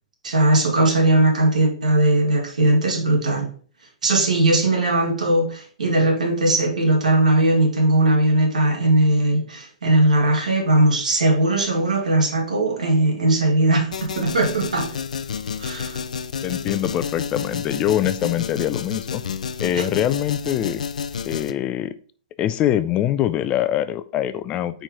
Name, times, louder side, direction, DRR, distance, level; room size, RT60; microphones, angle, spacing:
voice 1, 0.2-3.5 4.0-14.9 15.6-16.0 19.7-19.8, right 2 dB, 85° right, 2 dB, 2.0 m, -19 dB
sound 1, 13.9-21.5, left 6 dB, 80° left, 0.5 m, -30 dB
voice 2, 16.4-19.2 19.6-20.8 21.3-22.0 22.4-24.8, left 11 dB, 25° left, 13 dB, 0.4 m, -23 dB
4.6 x 4.5 x 5.0 m, 0.43 s
hypercardioid pair, 130°, 4 cm